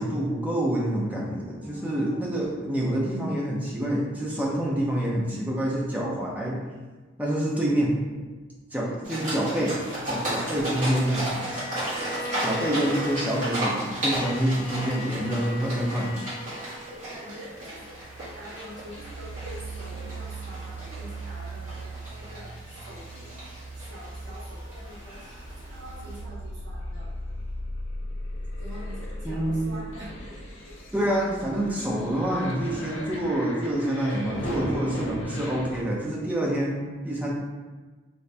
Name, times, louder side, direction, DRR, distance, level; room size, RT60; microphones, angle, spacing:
voice 1, 0.0-6.6 7.2-7.9 8.7-9.8 10.0-11.4 12.4-16.4 29.2-29.8 30.9-37.3, right 1 dB, 10° right, -4 dB, 0.5 m, -27 dB
voice 2, 1.6-2.2 7.5-7.7 8.8-9.0 11.9-13.1 16.4-18.0 18.4-23.3 23.7-27.1 28.6-30.8 34.0-34.9 36.2-36.4, equal, 65° right, -7 dB, 1.2 m, -45 dB
sound 1, 9.0-26.2, right 1 dB, 40° right, 1.4 m, -35 dB
Bowed string instrument, 11.2-17.5, left 1 dB, 40° left, 0.7 m, -39 dB
sound 2, 17.5-35.8, equal, 80° left, 0.7 m, -38 dB
3.0 x 2.7 x 3.3 m, 1.3 s
head